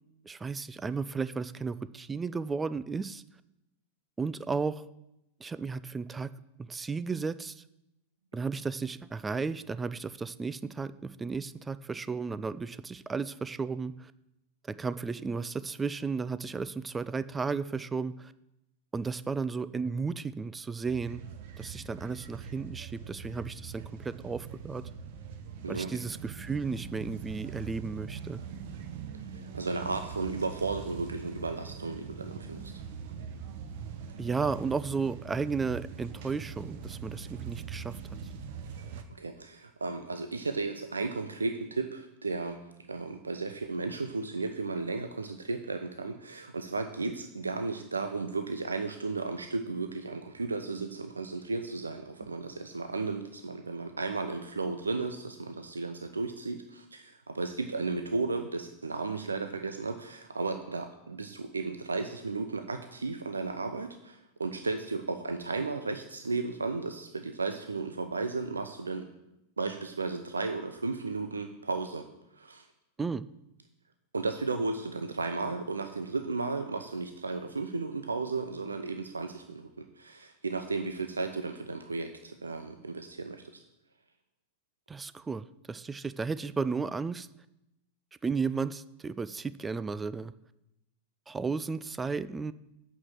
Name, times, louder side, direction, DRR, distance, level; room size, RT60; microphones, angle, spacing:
voice 1, 0.2-3.2 4.2-4.9 5.4-6.3 6.6-7.6 8.3-14.1 14.7-18.3 18.9-21.2 21.6-24.8 25.7-28.4 34.2-38.2 73.0-73.3 84.9-87.3 88.2-90.3 91.3-92.5, right 4 dB, 15° right, 16 dB, 0.4 m, -34 dB
sound 1, 20.8-39.0, right 7 dB, 50° right, 1.0 m, -42 dB
voice 2, 25.6-26.0 29.3-32.8 39.1-42.6 42.9-69.1 69.6-72.1 72.3-72.7 74.1-83.6, right 3 dB, 75° right, 7 dB, 0.6 m, -34 dB
8.6 x 6.7 x 7.3 m, 0.88 s
figure-of-eight pair, 90°, 0 cm